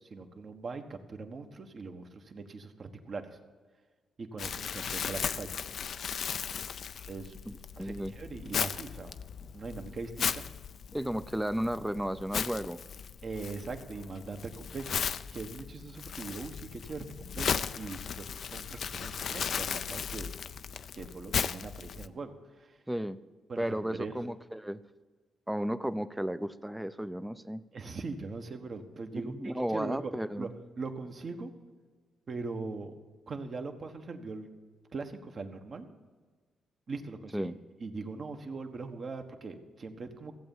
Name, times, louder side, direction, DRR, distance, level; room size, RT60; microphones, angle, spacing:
voice 1, 0.1-3.4 4.2-5.6 7.1-7.3 7.8-10.4 13.2-20.3 20.9-22.8 23.5-24.2 27.7-30.5 30.8-31.5 32.3-32.9 33.3-34.5 34.9-35.9 36.9-37.5 37.8-40.3, right 4 dB, 45° right, 6 dB, 1.4 m, -41 dB
Crumpling crinkling, 4.4-22.1, left 7 dB, 60° left, 0.5 m, -36 dB
voice 2, 7.5-8.1 10.9-12.8 22.9-23.2 23.6-24.8 25.5-27.6 29.2-30.5 37.3-37.5, equal, 5° right, 14 dB, 0.6 m, -34 dB
15.5 x 8.0 x 7.3 m, 1.4 s
cardioid pair, 95°, 0 cm